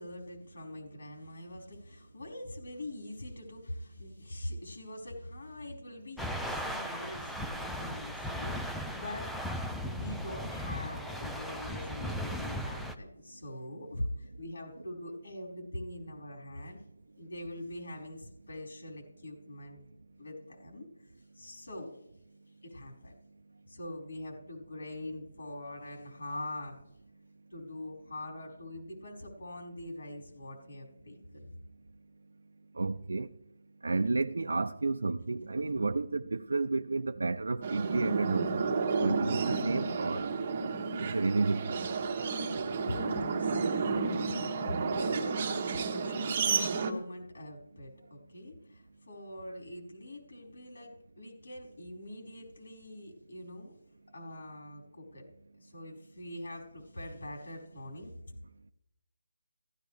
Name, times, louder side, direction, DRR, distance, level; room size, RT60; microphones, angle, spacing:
voice 1, 0.0-9.4 9.8-16.8 17.2-19.8 20.2-20.9 21.3-21.9 22.6-23.1 23.7-26.8 27.5-31.5 35.6-35.9 42.8-46.3 46.6-53.7 54.1-55.3 55.6-58.1, left 1 dB, 70° left, 4.9 m, -43 dB
sound 1, 6.2-13.0, equal, ahead, 0.5 m, -37 dB
voice 2, 32.7-33.3 33.8-38.7 39.0-40.3 41.0-41.8, right 3 dB, 80° right, 0.6 m, -31 dB
sound 2, 37.6-46.9, right 4 dB, 30° right, 1.3 m, -31 dB
15.5 x 13.0 x 3.4 m
hypercardioid pair, 170°, 0 cm